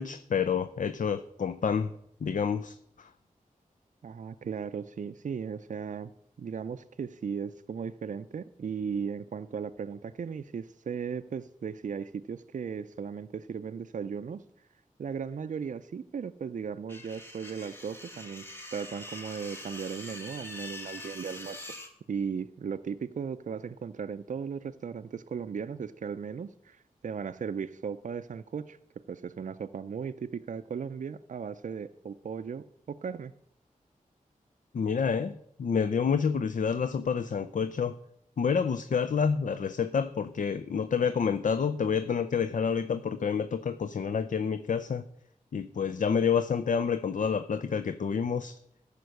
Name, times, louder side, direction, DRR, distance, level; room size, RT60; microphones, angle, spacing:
voice 1, 0.0-1.9 2.2-3.1 34.7-38.0 38.4-45.0 45.5-48.6, left 6 dB, 65° left, 10 dB, 0.5 m, -28 dB
voice 2, 4.0-6.1 6.4-14.4 15.0-18.4 18.7-21.7 22.1-28.8 29.1-33.3, right 6 dB, 65° right, 10 dB, 0.4 m, -36 dB
sound 1, 16.9-21.9, left 1 dB, 15° left, 1.7 m, -44 dB
14.0 x 5.2 x 6.5 m, 0.72 s
wide cardioid pair, 85°, 14 cm